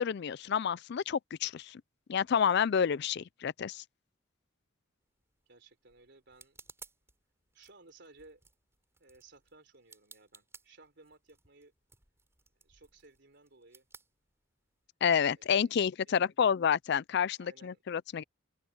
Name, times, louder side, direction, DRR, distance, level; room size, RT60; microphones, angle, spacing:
voice 1, 0.0-1.8 2.1-3.8 15.0-18.2, left 7 dB, 55° left, 0.4 m, -29 dB
sound 1, 5.0-14.9, right 4 dB, 15° right, 6.3 m, -59 dB
voice 2, 5.5-6.7 7.5-8.5 9.0-11.7 12.6-13.9 15.4-16.6 17.4-17.8, right 3 dB, 55° right, 3.7 m, -59 dB
open air
head